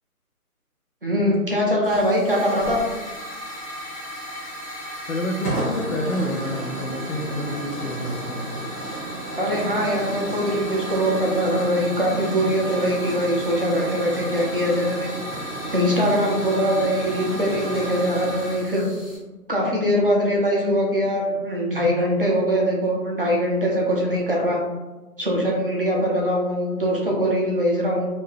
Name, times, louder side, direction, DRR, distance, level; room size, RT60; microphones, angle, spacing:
voice 1, 1.0-2.8 9.4-15.1 15.7-18.9 19.5-24.6 25.2-28.1, equal, 40° right, -3 dB, 0.5 m, -22 dB
Hiss / Fire, 1.8-19.2, right 1 dB, 25° left, 0.7 m, -32 dB
voice 2, 5.1-8.6, left 1 dB, 60° left, 3 dB, 0.5 m, -28 dB
2.6 x 2.1 x 3.1 m, 1.2 s
figure-of-eight pair, 155°, 45 cm